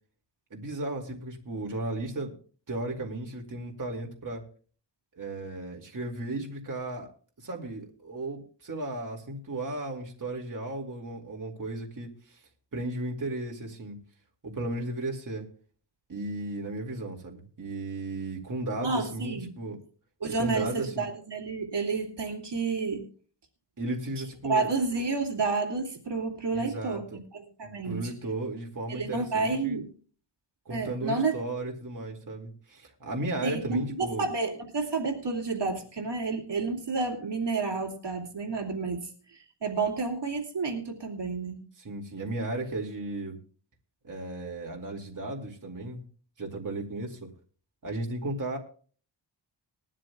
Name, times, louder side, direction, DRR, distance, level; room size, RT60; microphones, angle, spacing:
voice 1, 0.5-2.3 2.7-4.4 5.2-7.1 7.4-12.4 12.7-14.0 14.4-15.5 16.1-19.8 20.4-21.0 23.8-24.7 26.5-27.2 27.6-29.8 30.7-34.3 41.8-43.4 44.0-46.0 46.4-47.3 47.8-48.6, right 2 dB, 45° right, 0 dB, 2.4 m, -35 dB
voice 2, 18.8-19.6 20.2-23.1 24.5-28.1 28.9-29.9 30.7-31.3 33.4-41.6, right 4 dB, 65° right, 2 dB, 2.4 m, -30 dB
20.5 x 12.5 x 2.3 m, 0.42 s
wide cardioid pair, 140°, 46 cm